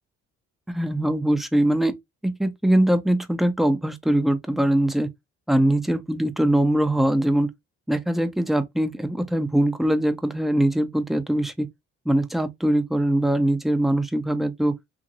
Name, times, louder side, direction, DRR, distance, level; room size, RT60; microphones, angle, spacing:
voice 1, 0.7-2.0 2.2-5.1 5.5-7.5 7.9-11.7 12.1-14.8, right 1 dB, ahead, 0.5 m, -22 dB
2.8 x 2.8 x 2.5 m
cardioid pair, 90°, 30 cm